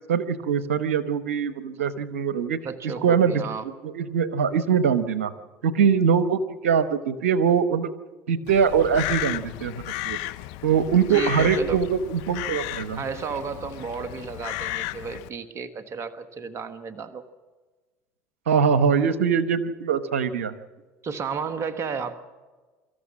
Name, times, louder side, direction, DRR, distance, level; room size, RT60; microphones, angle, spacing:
voice 1, 0.1-2.6 3.0-5.3 5.6-7.9 8.3-9.7 10.0-10.2 10.6-13.0 18.5-20.5, right 7 dB, 90° right, 12 dB, 1.0 m, -22 dB
voice 2, 2.6-3.7 11.1-11.8 12.9-17.2 21.0-22.1, right 5 dB, 40° right, 10 dB, 1.5 m, -32 dB
Crow, 8.5-15.3, left 16 dB, 70° left, 0.7 m, -34 dB
25.0 x 14.0 x 7.4 m, 1.3 s
hypercardioid pair, 75°, 7 cm